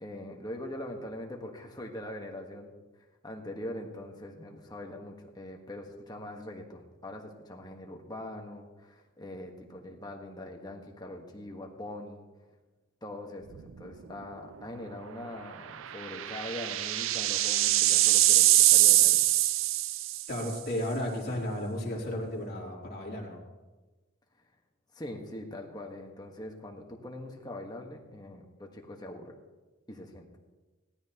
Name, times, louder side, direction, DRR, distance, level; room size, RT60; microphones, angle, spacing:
voice 1, 0.0-2.7 3.2-12.2 13.0-19.2 24.9-29.3 29.9-30.3, left 1 dB, 20° left, 2 dB, 1.4 m, -42 dB
sound 1, 13.5-13.9 14.2-14.3 15.7-20.4, right 15 dB, 75° right, 0.4 m, -23 dB
voice 2, 20.3-23.4, left 1 dB, 50° left, -4 dB, 3.3 m, -34 dB
18.5 x 13.5 x 3.0 m, 1.2 s
head